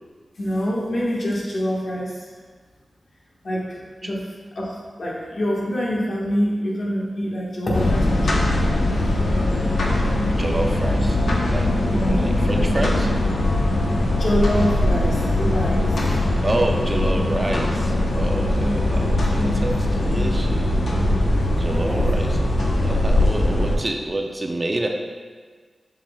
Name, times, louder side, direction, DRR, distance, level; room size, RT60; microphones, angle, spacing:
voice 1, 0.4-2.2 3.4-4.2 4.5-8.6 8.9-9.1 11.8-12.2 14.2-15.9 18.5-19.0 19.3-19.7 21.7-22.1, equal, 60° left, -4 dB, 1.5 m, -26 dB
sound 1, 7.7-23.8, left 1 dB, 80° left, 0.9 m, -21 dB
voice 2, 10.4-11.2 11.5-11.7 12.0-13.1 16.4-20.7 21.6-22.4 22.8-24.9, right 1 dB, 30° right, 2 dB, 0.6 m, -27 dB
7.3 x 6.0 x 2.3 m, 1.5 s
wide cardioid pair, 85°, 0 cm